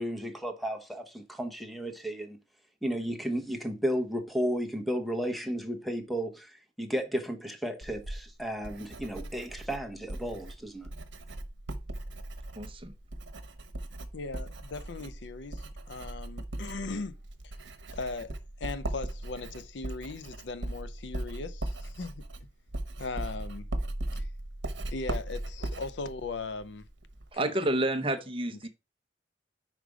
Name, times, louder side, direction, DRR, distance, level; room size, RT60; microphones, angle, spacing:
voice 1, 0.0-2.4 2.8-10.9, equal, ahead, 0.9 m, -33 dB
Writing, 7.8-27.3, right 1 dB, 85° right, 0.9 m, -39 dB
voice 2, 12.6-12.9 27.3-28.7, right 1 dB, 30° right, 0.7 m, -29 dB
voice 3, 14.1-17.2 17.9-22.2 23.0-23.7 24.1-24.3 24.9-26.9 27.3-27.5, left 3 dB, 70° left, 0.6 m, -38 dB
5.0 x 5.0 x 4.9 m
head